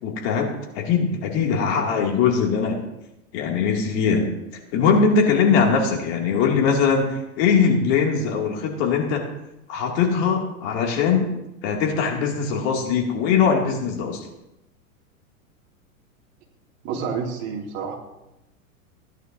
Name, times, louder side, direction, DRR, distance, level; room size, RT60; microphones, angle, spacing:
voice 1, 0.0-2.8 3.3-4.3 4.7-9.2 9.7-11.3 11.6-14.3, left 6 dB, 50° left, 1 dB, 2.5 m, -21 dB
voice 2, 16.8-18.0, right 6 dB, 40° right, 0 dB, 2.6 m, -29 dB
16.5 x 11.0 x 2.7 m, 0.91 s
hypercardioid pair, 135°, 43 cm